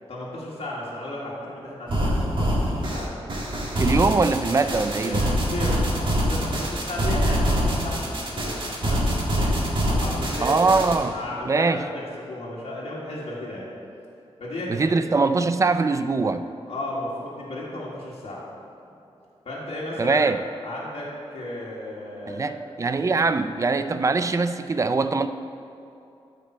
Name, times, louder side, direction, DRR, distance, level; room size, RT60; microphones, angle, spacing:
voice 1, 0.1-3.1 4.8-9.5 9.9-10.6 11.1-13.7 14.4-14.9 16.7-18.4 19.5-20.2 20.6-21.1 21.3-22.6, left 1 dB, 70° left, -6 dB, 1.8 m, -34 dB
sound 1, 1.9-11.0, equal, 50° right, 1.8 m, -24 dB
voice 2, 3.8-5.2 10.4-11.2 11.5-11.8 14.7-16.5 20.0-20.4 22.3-25.3, right 3 dB, 30° right, 10 dB, 0.4 m, -22 dB
13.0 x 5.2 x 4.5 m, 2.7 s
wide cardioid pair, 105°, 11 cm